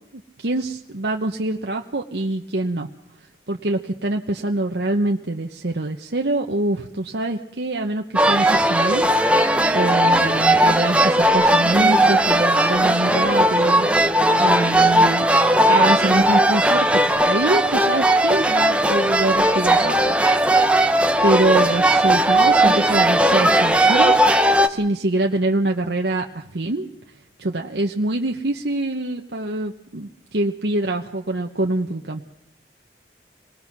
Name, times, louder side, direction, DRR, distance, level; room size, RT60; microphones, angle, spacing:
voice 1, 0.4-2.9 3.5-9.4 9.7-13.9 14.4-15.3 15.7-20.2 21.2-24.2 24.7-26.9 27.4-32.2, right 2 dB, 75° right, 2 dB, 1.0 m, -24 dB
sound 1, 8.2-24.7, right 1 dB, 5° right, 0.8 m, -17 dB
26.0 x 19.5 x 6.1 m, 0.77 s
head